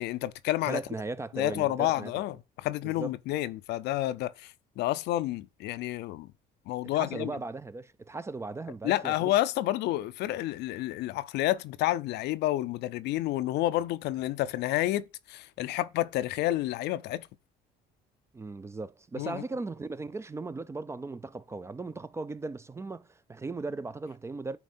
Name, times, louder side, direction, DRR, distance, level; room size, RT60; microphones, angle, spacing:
voice 1, 0.0-0.8 1.3-6.3 6.7-7.3 8.8-17.3 19.2-19.4, left 15 dB, 80° left, 0.5 m, -30 dB
voice 2, 0.7-2.1 2.8-3.1 6.9-9.3 18.3-24.6, right 3 dB, 15° right, 0.3 m, -37 dB
9.7 x 3.7 x 4.3 m
cardioid pair, 110°, 17 cm